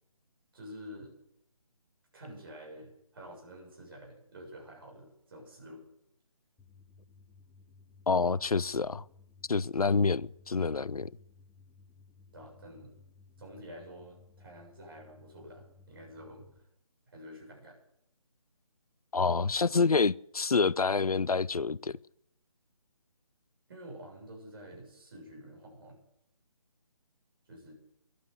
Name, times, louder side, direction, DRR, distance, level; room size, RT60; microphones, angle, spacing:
voice 1, 0.5-1.1 2.1-5.8 12.3-12.9 13.4-16.5 17.1-17.8 23.7-26.0 27.5-27.7, equal, 40° right, 7.2 m, -48 dB
sound 1, 6.6-16.6, left 4 dB, 5° left, 0.7 m, -59 dB
voice 2, 8.1-9.0 9.5-11.1 19.1-22.0, left 4 dB, 85° left, 0.5 m, -27 dB
12.5 x 12.0 x 8.0 m
figure-of-eight pair, 150°, 18 cm